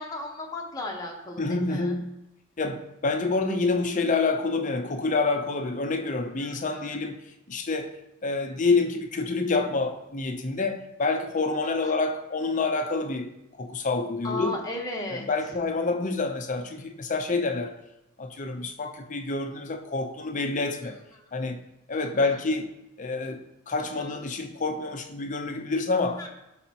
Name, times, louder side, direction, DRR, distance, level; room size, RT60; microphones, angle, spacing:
voice 1, 0.0-2.0 6.4-6.8 11.8-11.9 14.2-15.3 21.9-22.3 23.8-24.1 26.2-26.3, left 1 dB, 20° left, 0 dB, 1.1 m, -36 dB
voice 2, 1.4-2.1 2.6-7.2 7.5-7.9 8.2-13.3 13.6-14.6 15.1-17.7 18.2-21.0 21.3-21.6 21.9-22.7 23.0-26.3, left 3 dB, 40° left, 6 dB, 0.6 m, -27 dB
12.0 x 4.1 x 2.9 m, 0.92 s
head